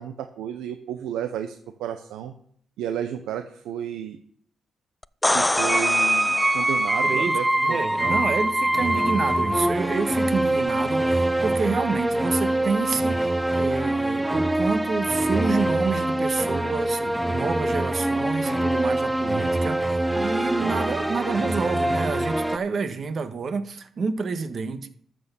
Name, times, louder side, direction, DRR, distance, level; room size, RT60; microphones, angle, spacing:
voice 1, 0.0-2.3 2.8-4.2 5.3-8.2, right 9 dB, 90° right, 7 dB, 0.8 m, -32 dB
sound 1, 5.0-7.0 10.7-10.8, left 1 dB, 10° left, 0.3 m, -25 dB
sound 2, 5.6-22.6, right 1 dB, 10° right, 0.9 m, -24 dB
voice 2, 7.0-24.9, right 4 dB, 50° right, 9 dB, 1.4 m, -28 dB
12.5 x 6.3 x 7.0 m, 0.63 s
cardioid pair, 80°, 0 cm